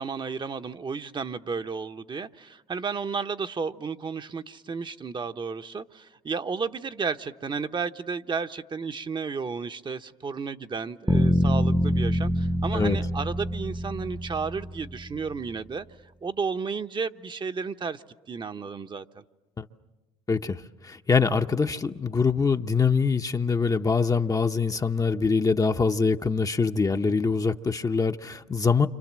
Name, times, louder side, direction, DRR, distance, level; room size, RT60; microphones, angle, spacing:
voice 1, 0.0-15.9 16.2-19.2, right 5 dB, 35° right, 1.0 m, -33 dB
sound 1, 11.1-15.2, equal, 5° right, 0.9 m, -25 dB
voice 2, 20.3-28.9, left 5 dB, 25° left, 0.9 m, -24 dB
29.5 x 26.0 x 7.5 m
supercardioid pair, 70°, 15 cm